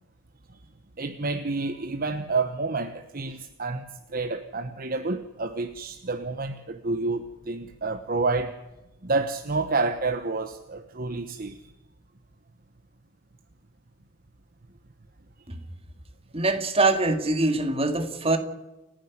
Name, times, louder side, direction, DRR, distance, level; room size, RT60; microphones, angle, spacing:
voice 1, 1.0-8.5 9.0-11.6, right 3 dB, 40° right, 1.1 m, -29 dB
voice 2, 16.3-18.4, right 2 dB, 25° right, 2.2 m, -23 dB
30.0 x 10.0 x 9.5 m
head